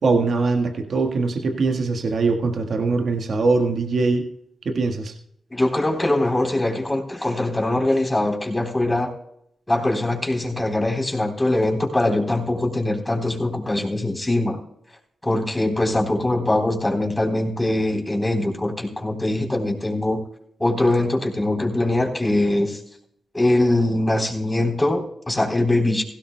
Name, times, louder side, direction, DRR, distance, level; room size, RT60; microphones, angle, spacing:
voice 1, 0.0-4.3 4.6-5.1, right 3 dB, 65° right, 4 dB, 1.4 m, -22 dB
voice 2, 5.5-9.1 9.7-14.6 15.3-20.2 20.6-22.8 23.3-26.0, left 1 dB, 15° left, 2 dB, 3.7 m, -22 dB
16.5 x 16.5 x 2.2 m, 0.72 s
cardioid pair, 60°, 0 cm